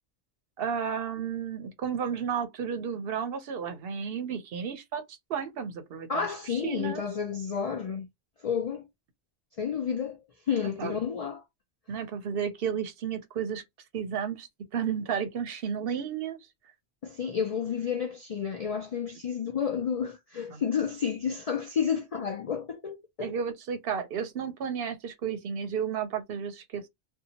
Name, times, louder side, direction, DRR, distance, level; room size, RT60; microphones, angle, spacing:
voice 1, 0.6-7.0 10.6-11.0 11.9-13.6 13.9-16.4 20.5-20.6 23.2-26.9, right 7 dB, 65° right, 0.7 m, -33 dB
voice 2, 6.1-8.1 8.4-8.9 9.6-11.4 17.0-23.4, left 7 dB, 60° left, 0.3 m, -31 dB
2.7 x 2.2 x 2.7 m
omnidirectional pair, 1.1 m